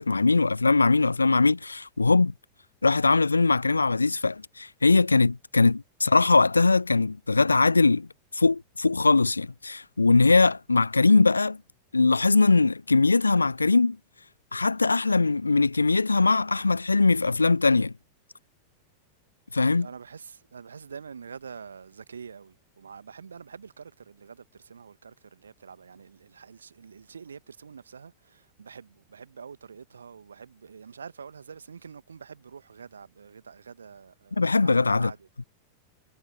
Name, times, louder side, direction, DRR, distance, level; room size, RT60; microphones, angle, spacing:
voice 1, 0.0-2.3 2.8-8.1 8.3-11.6 11.9-14.0 14.5-17.9 19.5-19.9 34.4-35.1, left 3 dB, 80° left, 0.3 m, -21 dB
voice 2, 19.8-35.3, right 6 dB, 70° right, 1.5 m, -46 dB
figure-of-eight pair, 90°, 0 cm